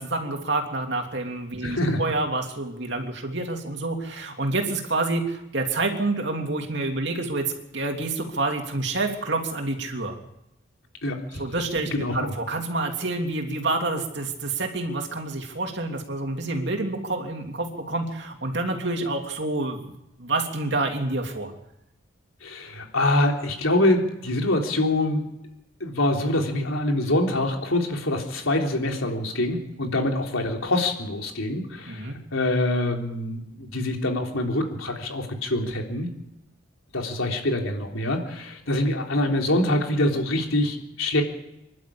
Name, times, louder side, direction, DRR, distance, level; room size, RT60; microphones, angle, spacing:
voice 1, 0.0-10.1 11.4-19.9 20.2-21.5 31.8-32.2, right 2 dB, 55° right, 3 dB, 3.0 m, -28 dB
voice 2, 1.6-2.0 11.0-11.5 11.9-12.3 22.4-25.3 25.8-36.1 36.9-41.2, left 1 dB, 85° left, 2 dB, 3.6 m, -25 dB
25.5 x 12.0 x 8.7 m, 0.87 s
head